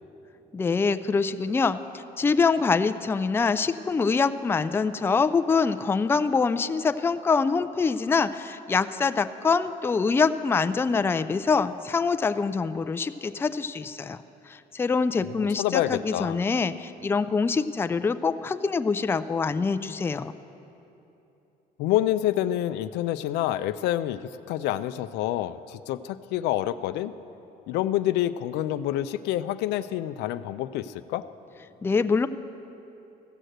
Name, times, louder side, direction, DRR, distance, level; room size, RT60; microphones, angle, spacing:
voice 1, 0.5-20.3 31.8-32.3, left 4 dB, 15° left, 11 dB, 0.3 m, -25 dB
voice 2, 15.6-16.4 21.8-27.1 27.7-31.2, left 13 dB, 85° left, 12 dB, 0.4 m, -27 dB
15.0 x 6.5 x 7.7 m, 2.9 s
cardioid pair, 110°, 17 cm